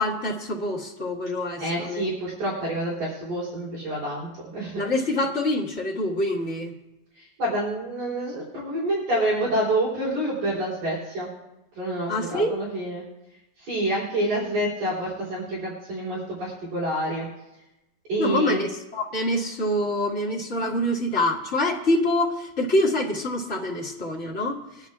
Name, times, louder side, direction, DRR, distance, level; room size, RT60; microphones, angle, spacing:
voice 1, 0.0-2.1 4.7-6.7 12.1-12.5 18.2-24.9, left 1 dB, 45° left, -5 dB, 0.9 m, -26 dB
voice 2, 1.6-4.8 7.1-11.3 11.7-13.0 13.6-17.3 18.1-18.6, right 1 dB, 60° right, -7 dB, 4.8 m, -27 dB
22.5 x 11.0 x 2.4 m, 0.93 s
omnidirectional pair, 4.0 m